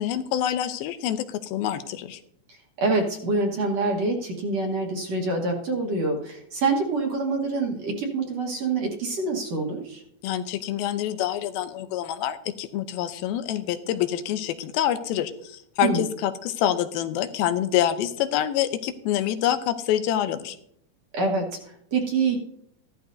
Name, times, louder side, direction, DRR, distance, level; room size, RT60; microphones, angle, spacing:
voice 1, 0.0-2.2 10.2-20.6, left 11 dB, 85° left, 10 dB, 2.5 m, -26 dB
voice 2, 2.5-10.0 15.8-16.0 21.1-22.4, right 3 dB, 55° right, 1 dB, 2.0 m, -26 dB
15.0 x 12.0 x 2.6 m, 0.71 s
omnidirectional pair, 4.2 m